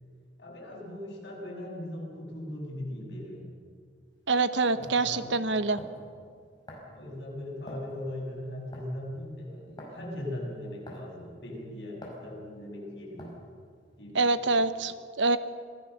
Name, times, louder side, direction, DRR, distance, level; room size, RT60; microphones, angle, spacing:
voice 1, 0.4-3.4 4.6-5.3 6.9-13.3 14.0-14.6, left 1 dB, 65° left, -3 dB, 7.2 m, -39 dB
sound 1, 4.1-4.2 4.8-5.0 5.8-6.1 6.7-7.0 7.7-7.9 8.7-9.0 9.8-10.0 10.9-11.2 12.0-12.2 13.2-13.5, equal, 25° left, 5.5 m, -44 dB
voice 2, 4.3-5.8 14.1-15.4, right 3 dB, 75° right, 12 dB, 1.0 m, -25 dB
26.5 x 17.0 x 6.7 m, 2.1 s
head